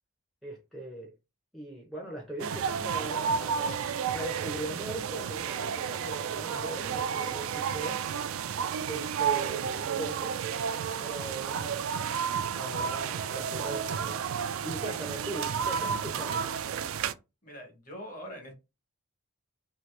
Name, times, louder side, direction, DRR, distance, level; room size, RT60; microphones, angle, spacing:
voice 1, 0.4-1.1 1.5-8.0 8.9-10.4 11.0-11.9 12.5-14.2 14.6-16.8, right 1 dB, ahead, 0.6 m, -40 dB
sound 1, 2.4-17.1, right 7 dB, 75° right, 0.3 m, -32 dB
voice 2, 17.4-18.6, equal, 40° left, 1.2 m, -43 dB
2.8 x 2.7 x 3.2 m
head